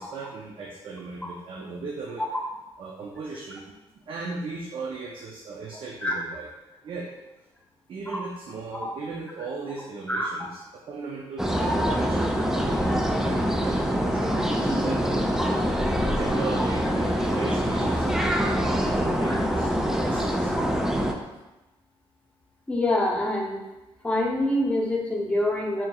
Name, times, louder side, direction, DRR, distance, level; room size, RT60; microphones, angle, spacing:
voice 1, 0.0-2.2 2.8-3.7 4.1-6.5 6.8-7.1 7.9-12.9 13.2-15.2 16.2-20.5, right 4 dB, 60° right, -1 dB, 0.5 m, -37 dB
sound 1, 11.4-21.1, equal, 5° right, 0.3 m, -24 dB
voice 2, 22.7-23.6 24.0-25.8, left 1 dB, 10° left, -2 dB, 0.8 m, -25 dB
4.3 x 3.7 x 2.3 m, 1.0 s
cardioid pair, 120°, 10 cm